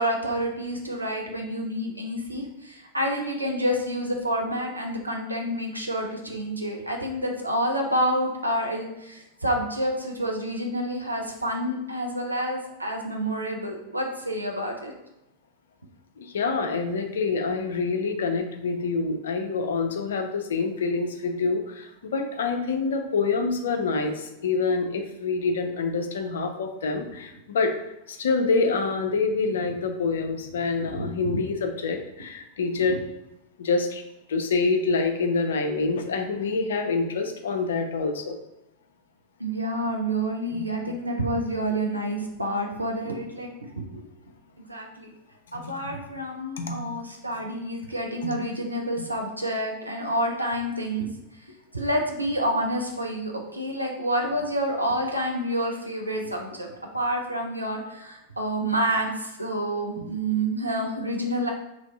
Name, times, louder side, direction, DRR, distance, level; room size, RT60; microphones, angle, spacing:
voice 1, 0.0-14.9 30.8-31.5 32.8-33.0 39.4-44.0 44.7-45.1 45.5-51.1 51.7-61.5, right 1 dB, 85° right, 1 dB, 0.6 m, -28 dB
voice 2, 16.2-27.7 28.1-33.0 33.6-34.0 34.3-38.4 40.5-40.7 45.6-45.9 46.6-47.0, left 4 dB, 65° left, 5 dB, 0.4 m, -26 dB
3.0 x 2.6 x 3.9 m, 0.88 s
figure-of-eight pair, 90°, 0 cm